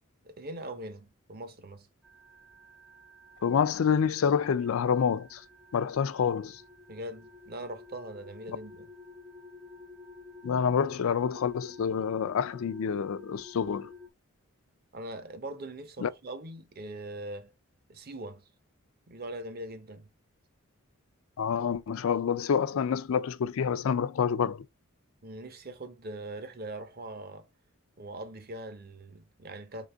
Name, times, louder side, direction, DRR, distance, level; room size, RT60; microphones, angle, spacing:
voice 1, 0.2-1.9 6.9-8.9 14.9-17.5 17.9-18.4 19.1-20.1 25.2-27.5 28.0-29.9, right 1 dB, 45° right, 0.8 m, -41 dB
sound 1, 2.0-14.1, left 3 dB, 5° right, 0.5 m, -51 dB
voice 2, 3.4-5.4 5.7-6.6 10.4-13.9 16.0-16.1 21.4-24.6, left 7 dB, 70° left, 0.4 m, -27 dB
3.9 x 3.4 x 3.4 m
head